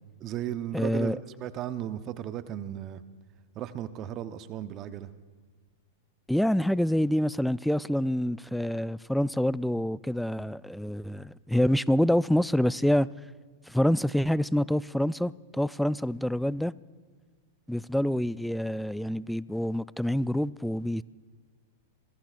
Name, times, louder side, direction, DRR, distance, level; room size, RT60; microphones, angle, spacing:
voice 1, 0.2-3.0 3.5-5.1, right 11 dB, 40° right, 0.9 m, -35 dB
voice 2, 0.7-1.2 6.3-13.1 13.7-16.7 17.7-21.0, equal, ahead, 0.4 m, -26 dB
26.5 x 21.0 x 2.5 m
hypercardioid pair, 105°, 0 cm